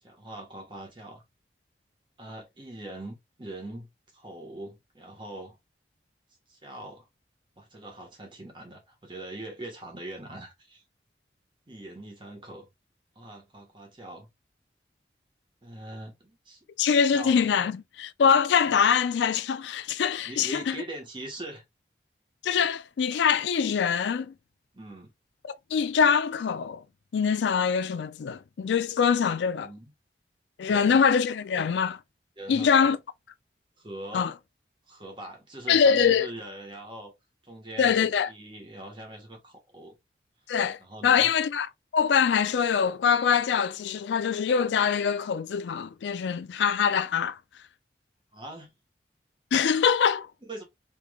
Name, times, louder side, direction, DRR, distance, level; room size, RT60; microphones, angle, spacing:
voice 1, 0.0-1.2 2.2-3.9 4.1-5.6 6.5-7.1 7.6-10.8 11.7-12.7 13.1-14.3 15.6-16.6 17.1-17.5 20.2-21.6 22.5-22.6 24.7-25.1 29.6-29.9 30.7-31.0 32.4-32.9 33.8-34.3 34.9-37.1 37.4-39.9 40.8-41.3 48.3-48.7 50.4-50.6, right 1 dB, 25° right, 1.3 m, -42 dB
voice 2, 16.8-20.8 22.4-24.3 25.4-26.8 27.1-29.7 30.6-32.0 32.5-33.0 34.1-34.3 35.7-36.3 37.8-38.3 40.5-41.7 41.9-47.4 49.5-50.3, left 7 dB, 85° left, 0.4 m, -24 dB
3.5 x 3.1 x 2.3 m
head